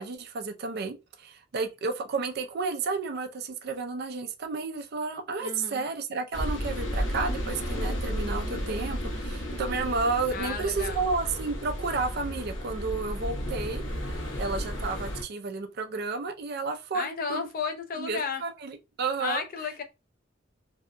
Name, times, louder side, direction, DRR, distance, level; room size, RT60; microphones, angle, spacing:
voice 1, 0.0-13.8 14.4-17.5 18.0-19.4, right 4 dB, 55° right, 0.4 m, -32 dB
voice 2, 5.4-5.8 10.3-11.1 16.9-18.4 19.2-19.8, left 5 dB, 50° left, 0.5 m, -33 dB
sound 1, 6.3-15.2, equal, 75° left, 1.0 m, -33 dB
2.7 x 2.2 x 2.4 m
head